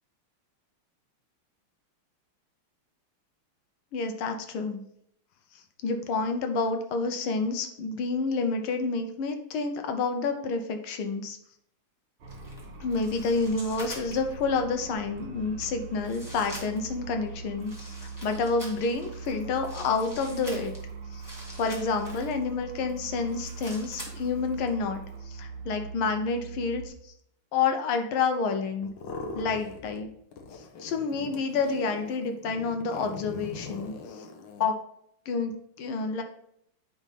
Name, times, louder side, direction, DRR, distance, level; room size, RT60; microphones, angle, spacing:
voice 1, 3.9-4.8 5.8-11.4 12.8-18.0 18.2-20.7 21.1-21.2 21.6-27.1 27.5-28.9 29.4-30.1 30.8-34.3 34.6-34.8 35.3-36.2, left 4 dB, 80° left, 6 dB, 1.7 m, -29 dB
sound 1, 12.2-26.9, right 4 dB, 90° right, 2.2 m, -41 dB
sound 2, 12.3-14.4 15.2-15.3 16.0-17.0 17.6-22.4 22.9-24.7 24.9-25.1, equal, 10° left, 1.9 m, -45 dB
sound 3, 28.8-30.1 30.3-34.7, left 3 dB, 65° left, 1.5 m, -42 dB
9.4 x 3.6 x 4.1 m, 0.70 s
omnidirectional pair, 2.3 m